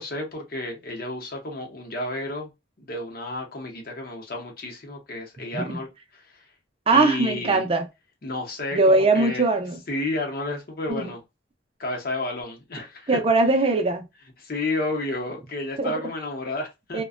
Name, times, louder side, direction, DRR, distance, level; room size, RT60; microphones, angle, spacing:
voice 1, 0.0-2.5 2.8-6.2 6.9-7.6 8.2-9.4 9.9-11.2 11.8-13.2 14.4-17.0, left 2 dB, 50° left, 0.8 m, -31 dB
voice 2, 6.9-7.9 8.7-9.8 10.9-11.1 13.1-14.1 15.8-15.9 16.9-17.0, right 3 dB, 30° right, 0.5 m, -21 dB
2.5 x 2.2 x 2.4 m
head